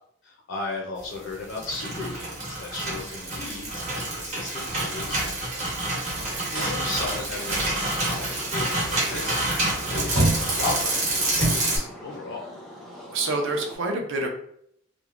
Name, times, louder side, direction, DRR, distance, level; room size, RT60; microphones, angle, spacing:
voice 1, 0.2-5.8 6.5-9.3 9.9-12.5, left 3 dB, 60° left, -1 dB, 0.4 m, -35 dB
sound 1, 1.3-11.8, right 2 dB, 35° right, 0.9 m, -28 dB
sound 2, 4.7-4.9 6.1-6.7 7.3-7.6 8.3-8.5 8.8-10.7 11.2-11.7, right 1 dB, 85° right, 1.2 m, -27 dB
sound 3, 6.2-13.8, equal, ahead, 0.6 m, -43 dB
voice 2, 13.1-14.3, right 2 dB, 60° right, 3 dB, 0.5 m, -27 dB
2.9 x 2.1 x 2.4 m, 0.69 s
head